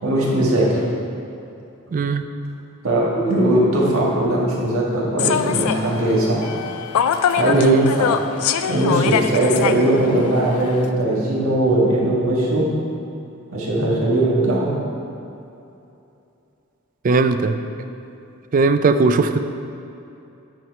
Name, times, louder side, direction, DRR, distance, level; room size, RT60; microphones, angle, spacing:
voice 1, 0.0-0.8 2.8-6.4 7.3-8.1 8.7-12.6 13.5-14.7, right 1 dB, 80° right, -5 dB, 1.7 m, -19 dB
voice 2, 1.9-2.2 7.5-7.9 17.0-17.6 18.5-19.4, right 3 dB, 40° right, 9 dB, 0.3 m, -18 dB
Human voice / Subway metro underground, 5.2-10.9, left 8 dB, 90° left, 0.4 m, -24 dB
8.9 x 4.6 x 4.4 m, 2.8 s
head